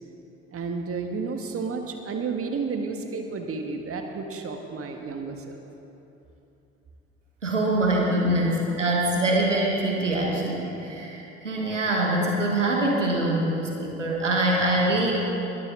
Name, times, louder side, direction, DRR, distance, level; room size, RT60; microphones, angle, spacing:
voice 1, 0.5-5.6 8.1-8.3, right 4 dB, 40° right, 4 dB, 1.6 m, -31 dB
voice 2, 7.4-8.5 8.8-15.1, right 1 dB, 85° right, -1 dB, 1.4 m, -24 dB
21.5 x 14.5 x 3.8 m, 3.0 s
figure-of-eight pair, 45°, 36 cm